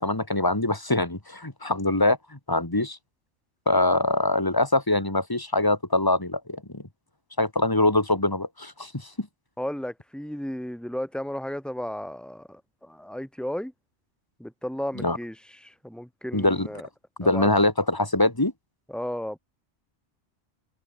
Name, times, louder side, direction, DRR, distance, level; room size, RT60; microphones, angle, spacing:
voice 1, 0.0-3.0 3.7-6.8 7.4-9.3 15.0-15.2 16.3-16.7 17.2-18.5, left 2 dB, 20° left, 2.6 m, -23 dB
voice 2, 9.6-13.7 14.4-15.4 15.6-16.9 17.2-17.5 18.9-19.4, left 1 dB, ahead, 4.9 m, -34 dB
open air
omnidirectional pair, 1.2 m